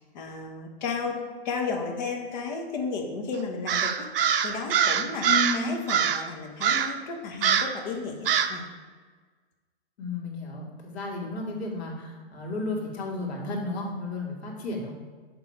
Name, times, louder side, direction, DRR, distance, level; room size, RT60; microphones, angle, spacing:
voice 1, 0.0-5.3 5.5-8.7, left 4 dB, 40° left, 3 dB, 1.4 m, -33 dB
Crow, 3.7-5.6 5.9-6.3 6.6-7.0 7.4-7.8 8.3-8.6, right 8 dB, 55° right, 0.6 m, -24 dB
voice 2, 5.2-5.7 10.0-14.9, left 2 dB, 70° left, -2 dB, 2.5 m, -33 dB
11.0 x 3.7 x 4.7 m, 1.5 s
hypercardioid pair, 150°, 33 cm